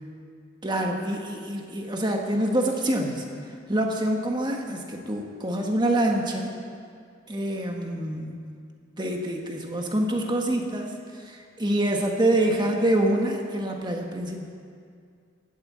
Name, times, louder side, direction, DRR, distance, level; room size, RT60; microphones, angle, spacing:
voice 1, 0.6-3.3 3.7-6.5 7.3-8.5 9.0-14.5, right 1 dB, 20° right, 2 dB, 1.5 m, -26 dB
16.0 x 9.5 x 8.5 m, 2.3 s
head